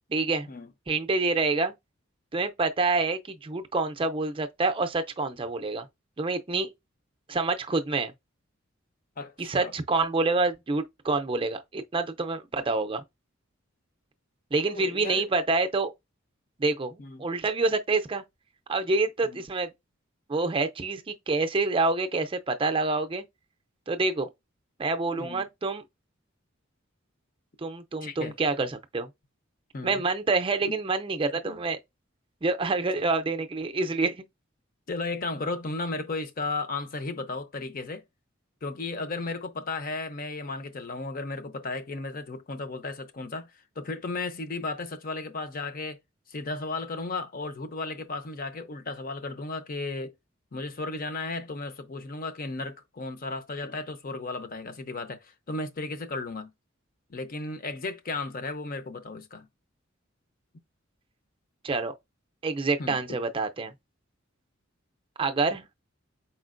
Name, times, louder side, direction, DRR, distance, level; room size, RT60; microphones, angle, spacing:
voice 1, 0.1-0.5 0.9-1.7 2.3-5.9 6.2-6.7 7.3-8.1 9.4-13.0 14.5-15.9 16.6-18.2 18.7-19.7 20.3-23.2 23.9-24.3 24.8-25.8 27.6-29.1 29.8-31.8 32.4-34.2 61.6-61.9 62.4-63.7 65.2-65.6, right 3 dB, 25° right, 0.5 m, -27 dB
voice 2, 9.2-9.7 14.7-15.3 17.0-17.3 19.2-19.4 25.2-25.5 28.0-28.3 29.7-30.0 30.7-30.8 31.4-31.6 34.9-38.0 38.6-43.5 43.8-46.0 46.3-50.1 50.5-56.5 57.1-59.5 62.8-63.2, left 3 dB, 45° left, 0.6 m, -34 dB
4.8 x 4.3 x 2.5 m
head